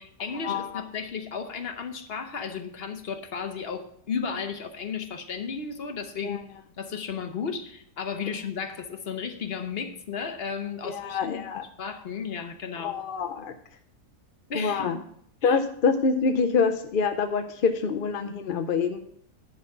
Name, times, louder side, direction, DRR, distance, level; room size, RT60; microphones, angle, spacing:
voice 1, 0.0-6.4 6.8-11.5 11.8-13.0 14.5-15.0 15.4-15.6, left 6 dB, 45° left, 0.9 m, -34 dB
voice 2, 10.8-11.6 12.8-13.5 14.5-15.0 15.4-19.0, left 5 dB, 65° left, 0.5 m, -26 dB
10.5 x 4.7 x 6.6 m
omnidirectional pair, 1.8 m